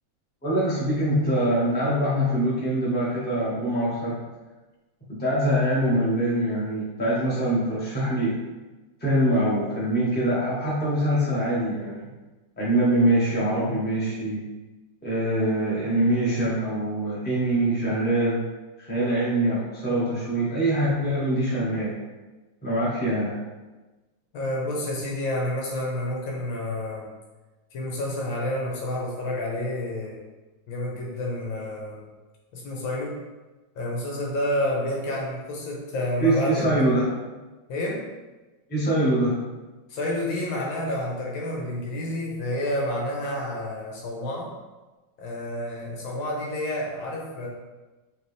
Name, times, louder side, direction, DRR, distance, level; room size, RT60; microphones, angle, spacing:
voice 1, 0.4-4.2 5.1-8.3 9.0-12.1 12.6-14.4 15.0-18.4 18.8-21.9 22.6-23.4 36.2-37.1 38.7-39.4, right 1 dB, 5° left, -8 dB, 0.8 m, -24 dB
voice 2, 24.3-27.1 27.7-30.2 30.7-32.1 32.5-33.2 33.8-36.9 37.7-38.0 39.9-44.5 45.2-47.5, left 1 dB, 75° left, -3 dB, 1.6 m, -29 dB
5.0 x 2.7 x 3.3 m, 1.2 s
omnidirectional pair, 2.2 m